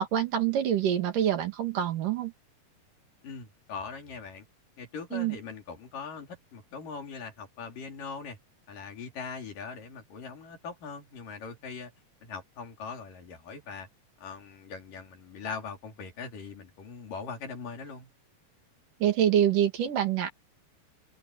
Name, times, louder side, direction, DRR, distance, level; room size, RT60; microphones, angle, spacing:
voice 1, 0.0-2.3 5.1-5.4 19.0-20.3, right 10 dB, 75° right, 3.6 m, -26 dB
voice 2, 3.2-4.5 4.8-8.4 8.7-11.9 12.2-13.9 14.2-18.1, left 5 dB, 75° left, 5.4 m, -41 dB
omnidirectional pair, 3.9 m